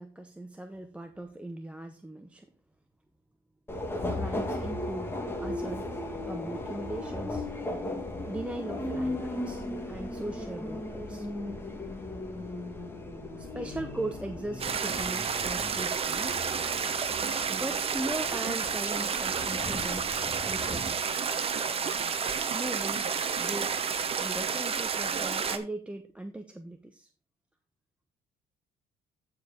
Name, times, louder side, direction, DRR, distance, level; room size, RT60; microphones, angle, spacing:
voice 1, 0.0-2.5 4.1-5.9 6.3-7.5 8.3-11.3 13.4-16.5 17.5-21.0 22.5-27.1, right 1 dB, 5° right, 6 dB, 0.7 m, -39 dB
Subway metro underground, 3.7-20.9, left 1 dB, 15° left, 1.8 m, -37 dB
sound 1, 14.6-25.6, right 6 dB, 35° right, 0.9 m, -30 dB
14.0 x 4.9 x 3.5 m, 0.34 s
cardioid pair, 110°, 17 cm